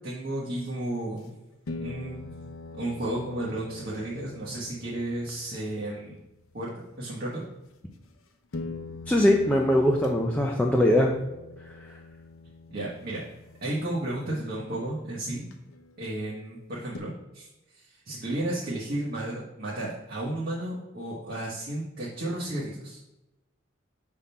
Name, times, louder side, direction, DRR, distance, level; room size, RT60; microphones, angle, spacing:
voice 1, 0.0-1.3 1.8-2.3 2.7-6.2 6.5-6.7 7.0-7.4 12.7-13.2 13.6-15.5 16.0-17.5 17.7-23.0, right 1 dB, 45° right, -6 dB, 1.1 m, -33 dB
sound 1, 0.8-0.9 1.7-6.7 8.0-8.1 8.5-15.9 16.9-17.0, left 3 dB, 85° left, 0.6 m, -43 dB
voice 2, 9.1-11.1, left 1 dB, 5° left, 0 dB, 0.4 m, -21 dB
5.6 x 3.6 x 5.5 m, 0.98 s
head